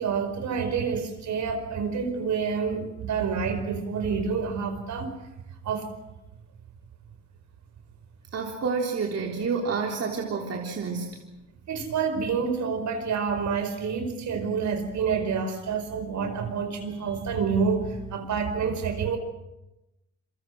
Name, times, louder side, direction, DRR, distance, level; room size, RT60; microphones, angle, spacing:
voice 1, 0.0-5.1 5.6-5.9 11.7-19.2, right 5 dB, 70° right, 7 dB, 4.8 m, -28 dB
voice 2, 8.3-11.2, right 5 dB, 55° right, 0 dB, 3.6 m, -29 dB
28.5 x 23.5 x 6.3 m, 0.96 s
cardioid pair, 90°, 30 cm